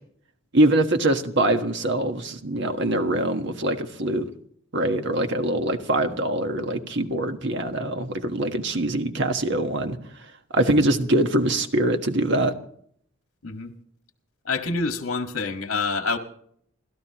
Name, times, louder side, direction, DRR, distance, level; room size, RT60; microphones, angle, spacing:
voice 1, 0.5-4.3 4.7-10.0 10.5-12.5, right 1 dB, 55° right, 1.4 m, -23 dB
voice 2, 14.4-16.2, left 3 dB, 75° left, 1.8 m, -27 dB
29.5 x 13.0 x 3.0 m
head